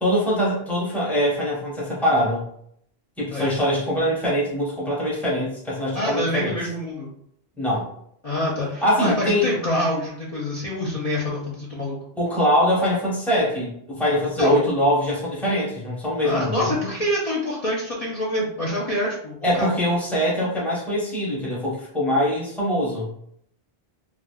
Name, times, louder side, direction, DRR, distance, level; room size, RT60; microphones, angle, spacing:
voice 1, 0.0-2.5 3.2-6.5 7.6-7.9 8.8-9.5 12.1-16.7 19.4-23.1, equal, ahead, -6 dB, 0.8 m, -23 dB
voice 2, 5.9-7.1 8.2-12.0 14.4-14.6 16.2-19.7, left 1 dB, 40° left, -6 dB, 0.6 m, -26 dB
3.3 x 2.4 x 2.2 m, 0.70 s
omnidirectional pair, 1.0 m